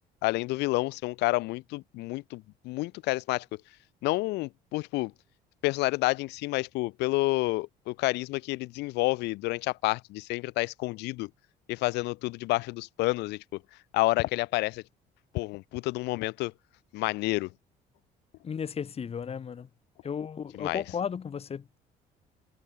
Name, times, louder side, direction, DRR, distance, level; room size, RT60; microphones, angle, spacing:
voice 1, 0.2-3.6 4.0-5.1 5.6-11.3 11.7-13.6 13.9-14.8 15.3-16.5 16.9-17.5 20.5-20.8, left 21 dB, 85° left, 0.5 m, -29 dB
voice 2, 18.4-19.7 20.0-21.8, left 7 dB, 35° left, 1.9 m, -34 dB
cardioid pair, 110°, 17 cm